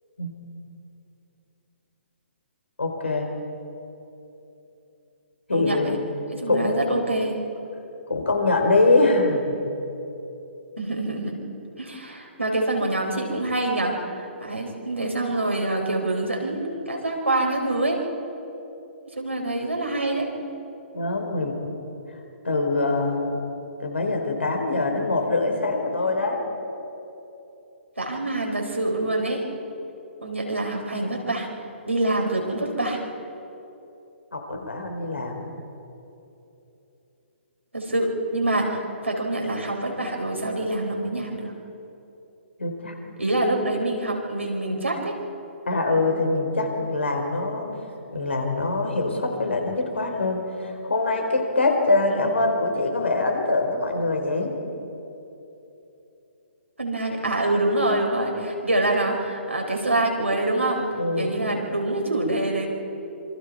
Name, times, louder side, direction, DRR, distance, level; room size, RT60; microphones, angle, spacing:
voice 1, 2.8-3.3 5.5-6.0 6.5-7.0 8.1-9.6 20.9-21.6 22.4-23.4 23.8-26.4 34.3-35.5 42.6-42.9 45.7-47.7 48.1-54.5 61.0-61.3, left 2 dB, 70° left, 3 dB, 4.2 m, -24 dB
voice 2, 5.5-6.0 6.4-7.4 10.8-11.4 11.8-18.0 19.1-20.3 28.0-29.4 30.2-31.5 31.8-33.0 34.5-34.6 37.7-41.5 43.2-45.2 52.1-52.3 56.8-60.9 61.2-62.7, right 2 dB, 80° right, 0 dB, 4.7 m, -26 dB
27.0 x 25.0 x 4.8 m, 3.0 s
figure-of-eight pair, 125°, 7 cm